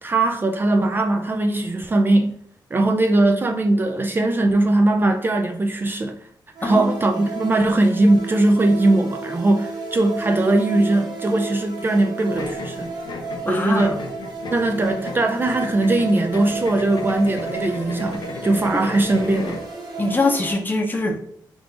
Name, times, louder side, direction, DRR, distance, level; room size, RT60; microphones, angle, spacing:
voice 1, 0.0-2.4 2.7-6.2 6.6-12.9 13.5-14.0 14.5-19.6, right 2 dB, 25° right, 0.3 m, -20 dB
sound 1, 6.5-20.5, right 3 dB, 60° right, 1.2 m, -33 dB
voice 2, 6.6-6.9 13.5-14.0 20.0-21.2, left 2 dB, 25° left, 0.7 m, -23 dB
sound 2, 12.4-19.7, left 3 dB, 70° left, 0.6 m, -35 dB
3.7 x 2.5 x 4.5 m
wide cardioid pair, 130°, 8 cm